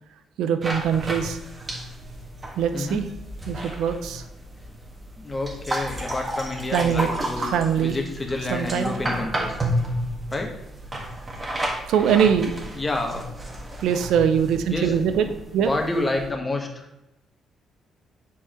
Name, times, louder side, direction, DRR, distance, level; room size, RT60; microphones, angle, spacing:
voice 1, 0.4-1.4 2.6-3.1 3.5-4.2 6.7-7.1 7.4-8.0 8.5-8.9 11.9-12.6 13.8-15.3 15.5-15.7, right 8 dB, 85° right, 9 dB, 0.6 m, -22 dB
sound 1, 0.6-16.3, right 1 dB, 25° right, 1.5 m, -32 dB
voice 2, 2.7-3.0 4.6-4.7 5.2-9.6 10.3-10.5 12.7-13.2 14.7-14.9 15.2-15.3 15.6-16.9, left 2 dB, 25° left, 3 dB, 1.4 m, -29 dB
7.2 x 4.7 x 4.4 m, 0.94 s
cardioid pair, 90°, 0 cm